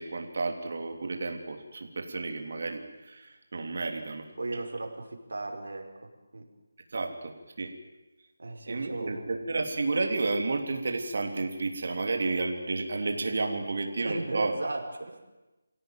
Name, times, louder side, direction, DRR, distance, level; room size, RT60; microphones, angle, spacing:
voice 1, 0.0-4.3 4.5-4.6 6.9-7.7 8.7-14.5, right 3 dB, 50° right, 3 dB, 3.4 m, -31 dB
voice 2, 4.4-6.5 8.4-9.3 14.0-15.2, right 2 dB, 80° right, 2 dB, 5.2 m, -36 dB
26.0 x 17.0 x 9.3 m, 1.1 s
figure-of-eight pair, 175°, 0 cm